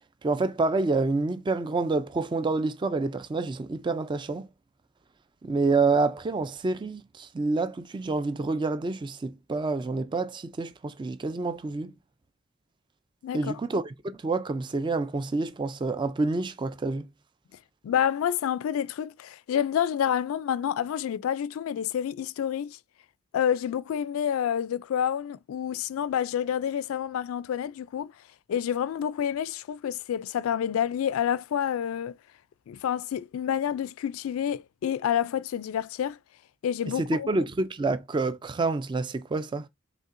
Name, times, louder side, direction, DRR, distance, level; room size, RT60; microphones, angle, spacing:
voice 1, 0.2-4.5 5.4-11.9 13.3-17.1 36.9-39.7, right 3 dB, 25° right, 0.3 m, -28 dB
voice 2, 13.2-13.5 17.8-22.8 23.3-28.1 28.5-32.1 32.7-36.2 36.6-37.3, left 9 dB, 85° left, 0.3 m, -28 dB
5.3 x 3.3 x 2.5 m
head